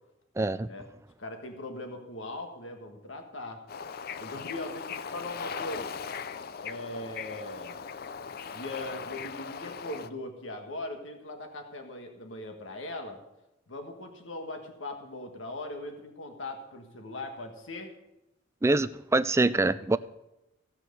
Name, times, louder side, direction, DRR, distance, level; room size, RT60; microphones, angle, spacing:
voice 1, 0.4-0.7 18.6-20.0, right 2 dB, 15° right, 14 dB, 0.3 m, -24 dB
voice 2, 1.2-3.6 4.2-6.0 6.6-7.8 8.5-13.2 13.7-17.9, left 2 dB, 80° left, 4 dB, 1.6 m, -40 dB
Bird / Ocean, 3.7-10.1, left 6 dB, 50° left, 0.5 m, -39 dB
15.5 x 6.0 x 6.7 m, 0.92 s
head